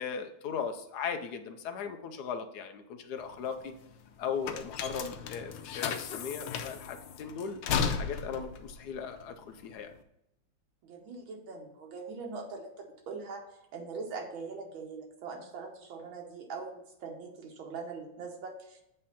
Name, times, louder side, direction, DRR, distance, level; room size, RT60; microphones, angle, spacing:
voice 1, 0.0-3.7 4.2-7.6 7.9-9.9, left 6 dB, 70° left, 7 dB, 1.0 m, -37 dB
sound 1, 3.2-10.0, left 6 dB, 90° left, 1.4 m, -35 dB
voice 2, 10.8-13.4 13.7-18.8, right 4 dB, 85° right, 1 dB, 1.7 m, -42 dB
8.3 x 3.3 x 5.6 m, 0.82 s
omnidirectional pair, 2.1 m